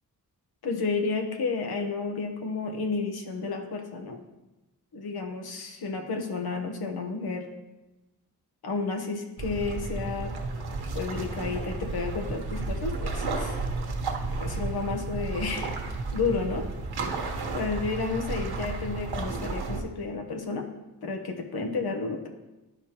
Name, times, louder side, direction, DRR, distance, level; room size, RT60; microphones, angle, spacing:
voice 1, 0.6-4.2 4.9-7.5 8.6-10.3 10.9-13.6 14.4-15.7 16.1-16.7 17.5-20.7 21.0-22.3, left 4 dB, 75° left, 4 dB, 1.1 m, -31 dB
sound 1, 9.4-19.8, right 3 dB, 90° right, 1.1 m, -32 dB
12.0 x 5.1 x 2.9 m, 1.0 s
wide cardioid pair, 145°, 38 cm